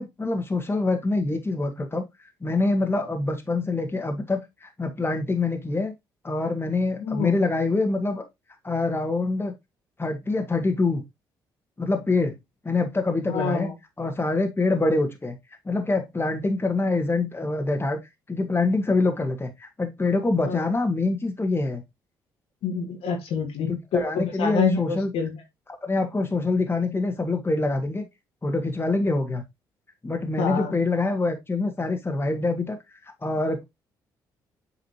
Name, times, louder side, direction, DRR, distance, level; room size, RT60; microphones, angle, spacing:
voice 1, 0.0-2.0 2.4-5.9 6.2-8.2 8.6-9.5 10.0-11.0 11.8-12.4 12.6-13.7 14.0-15.4 15.7-18.0 18.3-21.8 23.9-25.1 25.8-28.1 28.4-29.4 30.0-32.8 33.2-33.6, left 3 dB, 20° left, 1.9 m, -25 dB
voice 2, 7.0-7.4 13.3-13.7 20.4-20.6 22.6-25.4 30.4-30.8, left 5 dB, 65° left, 2.0 m, -27 dB
7.9 x 4.9 x 2.9 m
hypercardioid pair, 50°, 11 cm